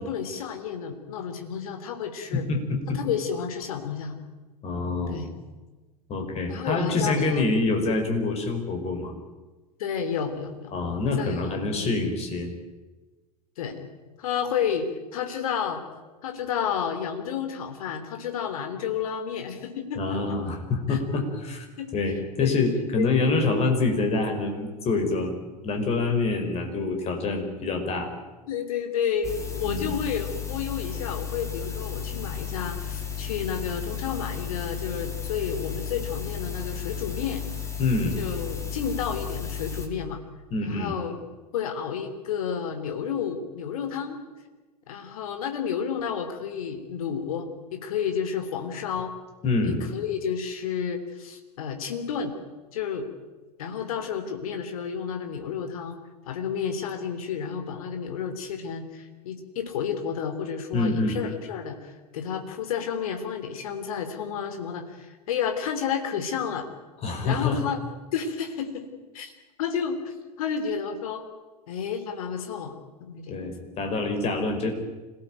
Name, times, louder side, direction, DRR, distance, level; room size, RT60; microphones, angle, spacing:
voice 1, 0.0-2.4 2.9-4.2 5.1-5.3 6.5-7.4 9.8-10.7 11.2-11.4 11.7-12.1 13.6-13.9 14.2-15.8 16.2-20.4 20.9-21.0 21.8-21.9 22.4-23.1 28.5-37.4 38.2-40.2 40.6-41.2 41.5-44.2 44.9-49.1 49.6-52.4 52.7-53.1 53.6-56.0 56.3-66.7 67.2-67.8 68.1-68.9 69.1-69.3 69.6-71.3 71.7-73.4, left 7 dB, 55° left, 7 dB, 3.6 m, -31 dB
voice 2, 2.3-3.0 4.6-5.2 6.1-9.1 10.7-12.5 20.0-21.6 21.9-28.1 29.6-29.9 37.8-38.2 40.5-41.0 49.4-49.8 60.7-61.2 67.0-67.6 73.3-74.7, left 3 dB, 30° left, 4 dB, 5.2 m, -26 dB
sound 1, 29.2-39.9, left 8 dB, 15° left, 3.4 m, -34 dB
26.0 x 18.0 x 9.2 m, 1.2 s
figure-of-eight pair, 90°, 21 cm